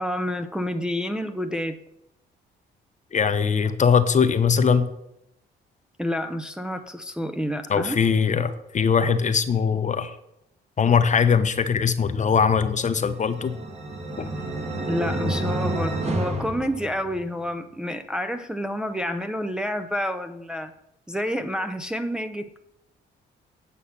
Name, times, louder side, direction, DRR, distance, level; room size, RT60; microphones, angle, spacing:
voice 1, 0.0-1.8 6.0-8.0 14.9-20.7 21.1-22.6, equal, 5° right, 6 dB, 0.5 m, -29 dB
voice 2, 3.1-4.9 7.7-10.1 10.8-13.5 14.2-14.3, left 6 dB, 40° left, 11 dB, 0.7 m, -21 dB
sound 1, 13.0-17.5, right 1 dB, 35° right, 1.4 m, -30 dB
8.4 x 5.7 x 5.7 m, 0.82 s
cardioid pair, 90°, 20 cm